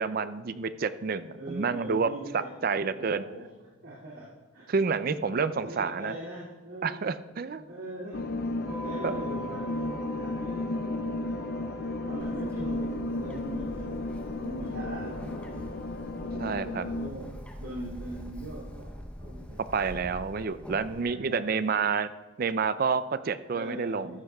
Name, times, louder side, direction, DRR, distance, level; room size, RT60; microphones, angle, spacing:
voice 1, 0.0-2.1 2.6-3.3 4.7-6.1 6.8-7.6 9.0-9.1 16.4-16.8 19.7-22.1 22.4-24.1, right 5 dB, 45° right, 13 dB, 0.4 m, -29 dB
voice 2, 1.4-3.6 3.8-5.0 5.6-7.1 7.6-8.3 8.7-11.5 12.0-15.8 16.2-19.6 20.8-21.7 23.5-24.2, right 1 dB, 85° right, -8 dB, 2.5 m, -41 dB
sound 1, 8.1-17.1, left 2 dB, 50° left, 0.5 m, -34 dB
sound 2, 8.6-17.3, right 2 dB, 10° right, 2.2 m, -44 dB
Bird, 12.2-21.0, equal, 5° left, 0.7 m, -44 dB
14.0 x 12.5 x 2.3 m, 1.3 s
head